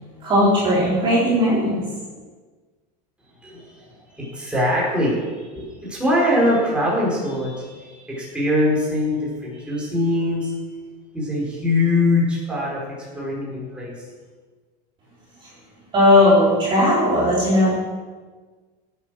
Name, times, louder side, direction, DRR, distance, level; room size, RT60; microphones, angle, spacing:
voice 1, 0.2-1.8 15.9-17.7, left 1 dB, 25° right, -8 dB, 4.1 m, -17 dB
voice 2, 3.4-10.7 11.1-12.8 13.1-13.9, left 1 dB, 5° right, -6 dB, 5.1 m, -23 dB
17.5 x 9.1 x 6.4 m, 1.4 s
supercardioid pair, 170°, 21 cm